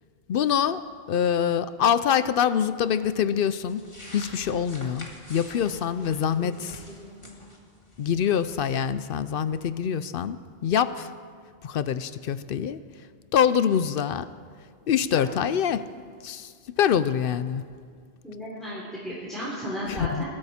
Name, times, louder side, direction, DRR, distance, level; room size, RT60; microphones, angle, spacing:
voice 1, 0.3-0.8 1.1-3.8 4.1-6.8 8.0-11.1 11.6-12.8 13.3-14.3 14.9-15.8 16.2-16.5 16.8-17.6 19.9-20.2, left 8 dB, 60° left, 14 dB, 0.7 m, -25 dB
sound 1, 3.7-8.8, left 1 dB, 25° left, 1.9 m, -47 dB
voice 2, 6.4-7.4 15.1-15.4 18.2-20.3, equal, ahead, -8 dB, 3.4 m, -35 dB
20.0 x 12.5 x 4.3 m, 2.1 s
omnidirectional pair, 1.2 m